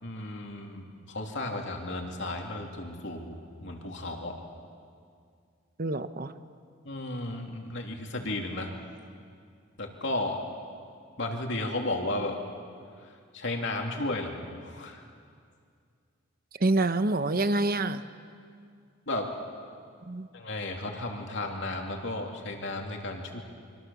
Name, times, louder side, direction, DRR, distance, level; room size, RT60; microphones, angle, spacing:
voice 1, 0.0-4.5 6.8-8.7 9.8-10.4 11.2-12.4 13.0-15.0 19.1-19.3 20.3-23.4, left 2 dB, 60° left, 2 dB, 3.0 m, -34 dB
voice 2, 5.8-6.3 16.6-18.0 20.1-20.3, right 2 dB, 45° right, 11 dB, 0.9 m, -26 dB
26.5 x 24.5 x 7.2 m, 2.3 s
head